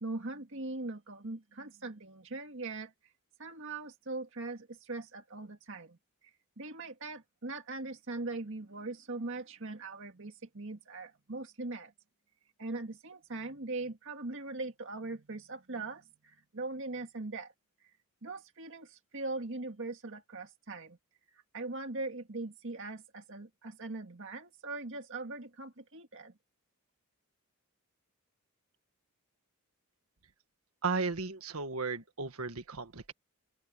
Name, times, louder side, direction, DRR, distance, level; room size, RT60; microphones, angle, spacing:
voice 1, 0.0-3.1 3.4-11.9 12.6-17.5 17.8-17.9 18.2-21.0 21.3-26.3, right 2 dB, 60° right, 1.9 m, -41 dB
voice 2, 30.8-33.1, right 4 dB, 75° right, 1.6 m, -35 dB
open air
head